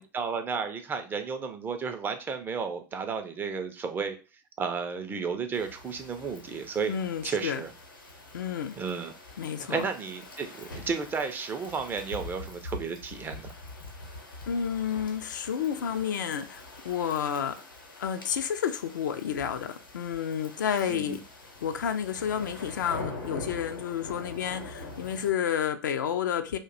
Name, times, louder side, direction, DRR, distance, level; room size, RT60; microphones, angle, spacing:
voice 1, 0.1-4.2 4.6-7.0 7.2-7.7 8.8-9.1 9.7-13.5 20.8-21.2, right 5 dB, 20° right, 7 dB, 0.4 m, -33 dB
sound 1, 5.5-25.3, left 2 dB, 80° left, 0.8 m, -44 dB
voice 2, 6.9-7.6 8.3-8.8 9.4-9.9 14.5-17.6 18.0-21.2 21.6-26.6, left 8 dB, 65° left, 8 dB, 0.4 m, -30 dB
2.6 x 2.2 x 3.8 m, 0.34 s
figure-of-eight pair, 85°, 11 cm